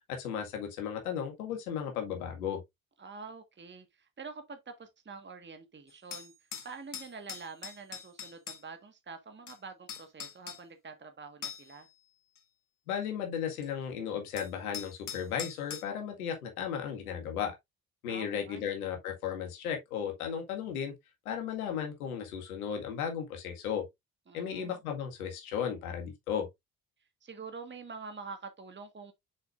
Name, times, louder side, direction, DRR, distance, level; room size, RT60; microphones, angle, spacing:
voice 1, 0.1-2.6 12.9-17.5 18.0-20.9 21.3-23.8 24.3-26.5, left 8 dB, 80° left, 1.9 m, -35 dB
voice 2, 3.0-6.3 6.6-11.9 18.1-18.7 24.3-24.8 27.2-29.1, right 4 dB, 25° right, 1.5 m, -46 dB
sound 1, 5.9-8.6 9.5-9.6 9.9-10.6 11.4-11.8 12.4-12.5 13.6-13.7 14.4-15.8, left 8 dB, 45° left, 2.3 m, -42 dB
6.4 x 6.4 x 2.5 m
figure-of-eight pair, 45°, 43 cm